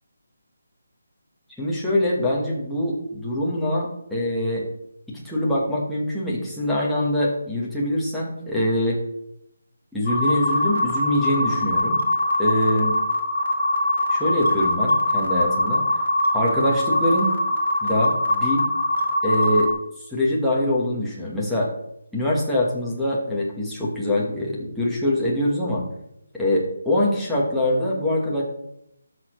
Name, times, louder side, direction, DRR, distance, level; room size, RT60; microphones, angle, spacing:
voice 1, 1.6-4.6 5.1-9.0 9.9-12.0 12.4-12.9 14.1-15.8 16.3-17.3 17.8-18.6 19.2-19.7 20.1-21.7 22.1-25.8 26.3-28.4, left 1 dB, ahead, -8 dB, 1.1 m, -24 dB
sound 1, 10.1-19.7, left 1 dB, 35° left, 1.8 m, -22 dB
14.0 x 6.4 x 3.1 m, 0.78 s
hypercardioid pair, 180°, 0 cm